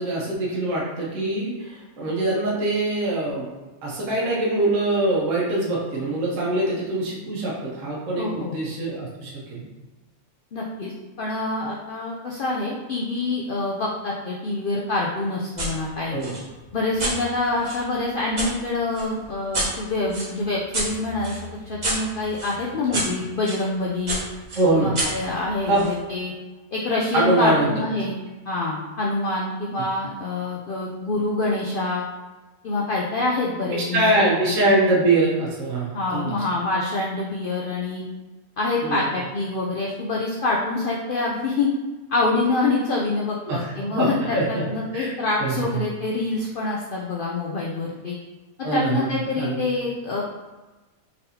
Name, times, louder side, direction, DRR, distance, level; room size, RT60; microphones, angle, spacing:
voice 1, 0.0-3.5 3.8-9.7 16.1-16.3 22.9-23.0 24.5-25.0 25.7-25.8 27.1-27.8 33.9-36.3 38.8-39.0 43.5-44.1 44.3-44.6 44.9-45.1 45.4-45.8 48.6-49.7, right 2 dB, 65° right, -5 dB, 1.2 m, -23 dB
voice 2, 8.2-8.6 10.5-16.2 16.7-21.4 21.7-24.2 24.7-26.3 26.7-28.2 28.5-32.1 32.6-34.1 34.4-34.5 35.9-38.0 38.6-41.7 42.1-48.2 48.7-50.2, left 2 dB, 70° left, -3 dB, 0.5 m, -26 dB
sound 1, 15.6-15.7 16.2-18.5 18.9-23.6 24.1-25.9, right 1 dB, 35° right, 1.0 m, -30 dB
4.1 x 3.6 x 2.7 m, 1.2 s
omnidirectional pair, 1.4 m